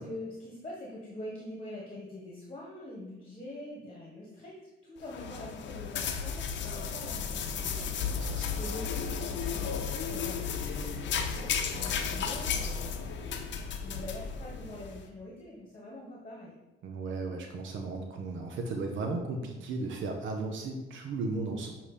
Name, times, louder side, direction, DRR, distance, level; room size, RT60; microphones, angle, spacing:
voice 1, 0.0-16.6, left 1 dB, 30° left, -3 dB, 1.3 m, -44 dB
sound 1, 5.0-15.0, left 6 dB, 65° left, 0.6 m, -34 dB
voice 2, 8.1-8.6 16.8-21.7, right 3 dB, 75° right, 3 dB, 0.7 m, -35 dB
6.7 x 2.9 x 4.9 m, 1.1 s
cardioid pair, 90°, 20 cm